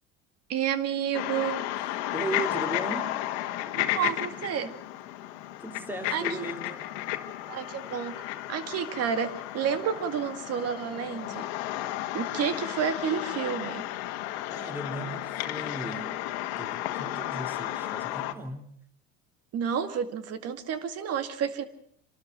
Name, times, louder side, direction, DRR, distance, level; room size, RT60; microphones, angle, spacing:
voice 1, 0.5-1.6 3.7-4.7 6.1-6.5 7.5-11.5 12.1-13.8 19.5-21.6, right 8 dB, 50° right, 10 dB, 2.2 m, -30 dB
sound 1, 1.1-18.3, left 14 dB, 80° left, 1.7 m, -33 dB
voice 2, 2.1-3.1 5.6-6.8 14.5-16.1 16.6-18.7, right 2 dB, 5° right, 6 dB, 3.1 m, -37 dB
27.0 x 12.5 x 8.0 m, 0.69 s
supercardioid pair, 105°, 32 cm